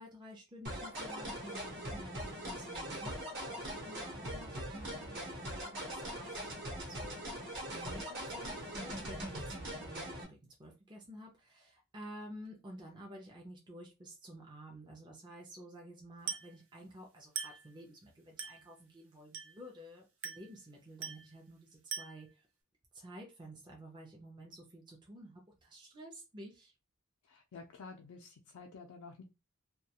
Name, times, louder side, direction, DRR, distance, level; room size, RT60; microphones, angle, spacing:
voice 1, 0.0-7.4 7.7-22.5 22.9-26.7, equal, 20° right, -1 dB, 0.5 m, -51 dB
sound 1, 0.6-10.2, right 1 dB, 50° right, 0.9 m, -41 dB
Glass, 16.3-16.6 17.4-17.7 18.4-18.7 19.3-19.7 20.2-20.6 21.0-21.3 21.9-22.3, right 6 dB, 90° right, 0.7 m, -42 dB
voice 2, 27.2-29.2, left 4 dB, 90° left, 2 dB, 0.4 m, -51 dB
2.3 x 2.2 x 2.8 m, 0.26 s
head